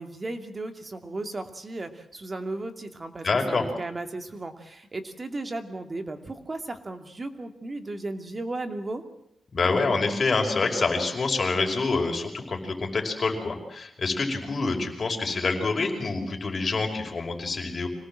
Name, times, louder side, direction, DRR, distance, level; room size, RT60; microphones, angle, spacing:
voice 1, 0.0-9.0, right 2 dB, 30° right, 6 dB, 2.6 m, -35 dB
voice 2, 3.2-3.6 9.5-17.9, left 3 dB, 40° left, 3 dB, 5.4 m, -26 dB
26.0 x 18.5 x 7.7 m, 0.79 s
cardioid pair, 105°, 0 cm